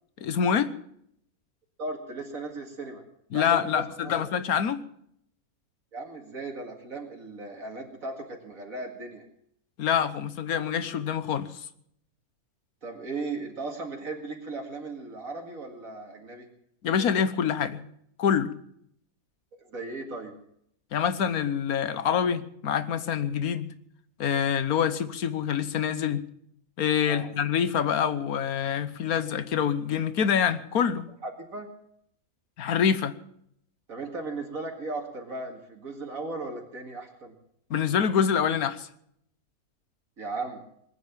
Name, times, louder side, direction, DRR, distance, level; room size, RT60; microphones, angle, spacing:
voice 1, 0.2-0.7 3.3-4.8 9.8-11.7 16.8-17.8 18.2-18.5 20.9-23.7 24.2-26.2 26.8-31.0 32.6-33.2 37.7-38.9, left 8 dB, 75° left, 1.5 m, -26 dB
voice 2, 1.8-3.0 3.3-4.2 5.9-9.2 12.8-16.5 19.6-20.4 27.0-27.3 31.2-31.7 33.9-37.4 40.2-40.6, right 3 dB, 65° right, 2.6 m, -37 dB
20.5 x 9.5 x 7.4 m
omnidirectional pair, 1.5 m